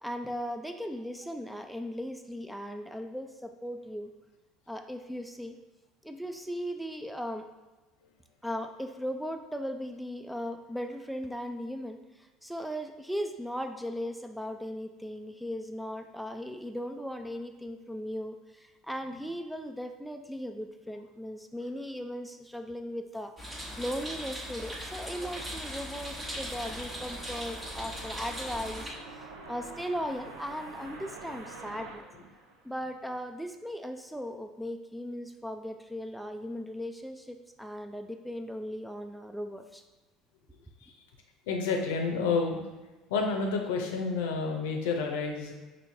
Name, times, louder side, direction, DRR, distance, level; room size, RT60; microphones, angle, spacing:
voice 1, 0.0-4.1 4.7-5.6 6.0-7.4 8.4-32.1 32.6-39.8, equal, ahead, 6 dB, 0.3 m, -38 dB
sound 1, 23.4-28.9, equal, 15° right, 1.0 m, -39 dB
sound 2, 24.9-33.1, right 3 dB, 75° right, 0.5 m, -48 dB
voice 2, 41.5-42.6 43.1-45.5, left 4 dB, 70° left, 2 dB, 0.6 m, -29 dB
5.0 x 2.7 x 2.7 m, 1.2 s
hypercardioid pair, 65°, 0 cm